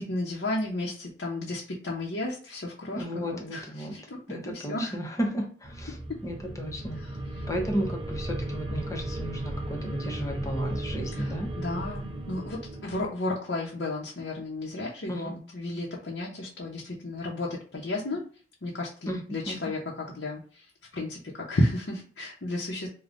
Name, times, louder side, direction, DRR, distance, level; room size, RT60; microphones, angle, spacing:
voice 1, 0.0-4.9 7.0-7.5 11.1-18.3 18.6-22.9, left 1 dB, 80° left, -3 dB, 0.8 m, -33 dB
voice 2, 3.0-3.9 4.3-6.0 6.2-7.0 7.5-11.5 15.1-15.4 19.1-19.2 19.5-19.6, equal, 20° left, 1 dB, 0.8 m, -33 dB
sound 1, 5.6-13.1, right 1 dB, 30° right, 0.5 m, -35 dB
5.0 x 2.3 x 2.5 m, 0.40 s
head